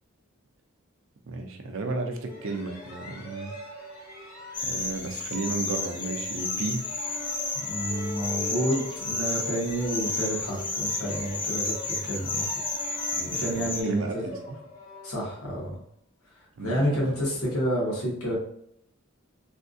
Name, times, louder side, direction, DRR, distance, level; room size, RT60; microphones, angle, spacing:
voice 1, 1.3-3.5 4.6-6.8 13.1-14.6 16.6-17.1, right 3 dB, 60° right, 5 dB, 0.5 m, -33 dB
sound 1, 2.2-15.7, left 1 dB, 40° left, 1.0 m, -43 dB
sound 2, 4.5-13.8, left 3 dB, 20° left, 0.4 m, -32 dB
voice 2, 7.6-12.5 12.9-14.0 15.0-15.8 16.6-18.3, equal, 80° left, -5 dB, 1.4 m, -29 dB
3.4 x 2.6 x 2.3 m, 0.71 s
head